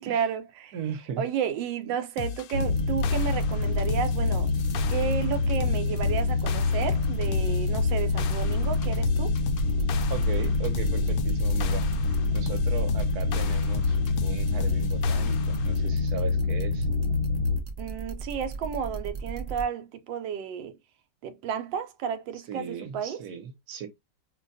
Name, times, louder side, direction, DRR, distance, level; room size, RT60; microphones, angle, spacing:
voice 1, 0.0-0.8 1.2-4.5 4.9-9.4 17.8-20.8 21.2-23.2, right 8 dB, 85° right, 1.3 m, -32 dB
voice 2, 0.7-1.2 10.1-16.9 22.5-23.9, right 7 dB, 65° right, 1.2 m, -37 dB
sound 1, 2.2-15.7, left 7 dB, 70° left, 0.8 m, -36 dB
sound 2, 2.5-17.6, left 4 dB, 45° left, 0.8 m, -26 dB
sound 3, 2.7-19.6, right 5 dB, 45° right, 0.5 m, -38 dB
5.1 x 2.2 x 2.6 m
omnidirectional pair, 2.0 m